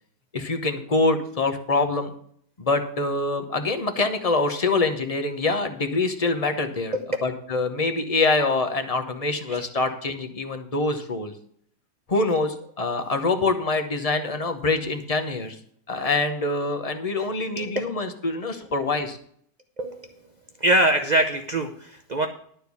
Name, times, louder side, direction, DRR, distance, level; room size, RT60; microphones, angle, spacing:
voice 1, 0.3-2.1 2.6-6.9 7.2-11.3 12.1-15.6 15.9-19.2, left 3 dB, 30° left, 7 dB, 0.8 m, -25 dB
voice 2, 17.2-17.7 19.8-20.1 20.6-22.3, right 1 dB, 50° right, 4 dB, 0.5 m, -24 dB
11.5 x 4.5 x 8.2 m, 0.63 s
omnidirectional pair, 1.8 m